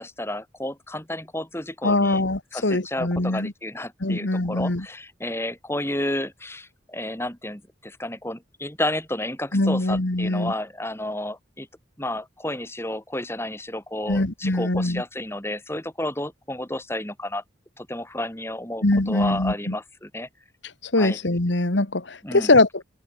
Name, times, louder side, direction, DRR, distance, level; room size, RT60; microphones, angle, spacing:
voice 1, 0.0-2.2 2.5-11.7 12.0-17.4 17.8-20.3 20.9-21.2 22.2-22.5, left 1 dB, 15° left, 6.7 m, -31 dB
voice 2, 1.8-3.5 4.0-4.9 9.5-10.5 14.1-15.0 18.8-19.8 20.8-22.8, left 2 dB, 70° left, 1.8 m, -22 dB
head